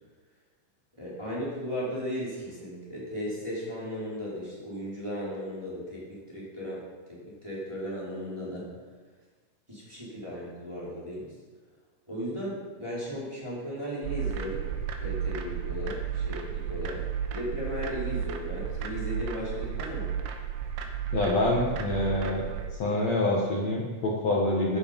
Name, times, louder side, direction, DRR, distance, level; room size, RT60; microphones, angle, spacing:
voice 1, 1.0-6.8 7.1-8.7 9.7-11.3 12.1-14.6 15.0-17.0 17.3-20.1, equal, 5° right, -8 dB, 4.4 m, -36 dB
sound 1, 14.0-22.7, right 8 dB, 90° right, 3.7 m, -33 dB
voice 2, 21.1-22.5 22.8-24.8, left 2 dB, 60° left, -2 dB, 1.8 m, -26 dB
15.0 x 11.0 x 5.5 m, 1.4 s
omnidirectional pair, 5.4 m